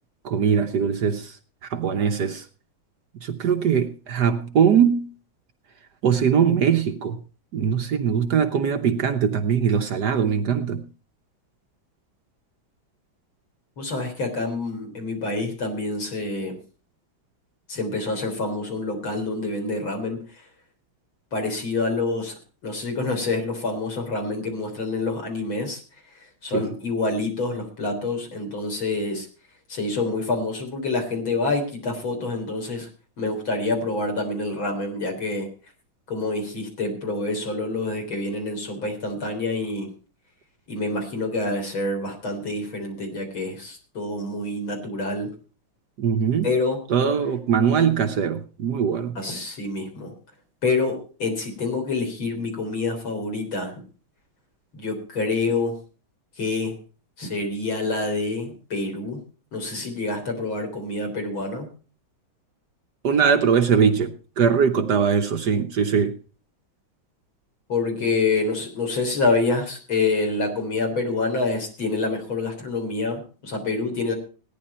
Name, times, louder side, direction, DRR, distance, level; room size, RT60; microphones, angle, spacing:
voice 1, 0.2-1.4 1.7-2.4 3.2-5.1 6.0-7.2 7.5-10.9 26.5-26.7 46.0-46.5 46.9-49.2 63.0-66.2, right 7 dB, 60° right, 1.4 m, -21 dB
voice 2, 13.8-16.6 17.7-20.2 21.3-22.3 22.6-25.8 26.4-29.3 29.7-32.9 33.2-35.5 36.1-39.9 40.7-45.3 46.4-46.8 49.2-50.1 50.6-53.7 54.7-55.8 56.4-56.7 57.2-59.2 59.5-61.7 67.7-74.1, left 3 dB, 75° left, 4.6 m, -27 dB
17.0 x 10.0 x 4.3 m
omnidirectional pair, 2.2 m